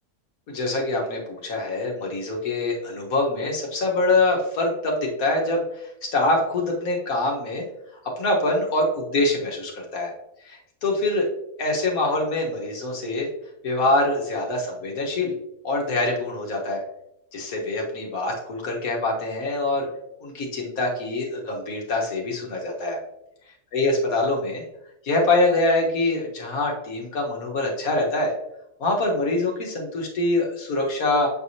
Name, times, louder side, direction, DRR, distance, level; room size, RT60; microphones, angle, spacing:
voice 1, 0.5-7.6 8.2-10.1 10.4-11.3 11.6-13.3 13.6-15.3 15.6-16.8 17.3-19.9 20.2-23.0 23.7-24.6 25.0-28.3 28.8-31.3, left 2 dB, 80° left, 0 dB, 1.8 m, -24 dB
7.7 x 4.7 x 2.8 m, 0.83 s
omnidirectional pair, 1.5 m